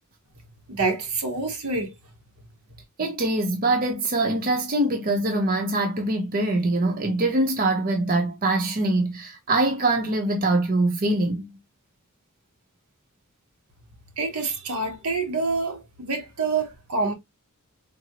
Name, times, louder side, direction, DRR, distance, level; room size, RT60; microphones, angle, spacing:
voice 1, 0.7-1.9 14.2-17.1, right 3 dB, 80° right, 0.9 m, -27 dB
voice 2, 3.0-11.6, right 2 dB, 40° right, 0.6 m, -23 dB
3.9 x 2.0 x 2.6 m
head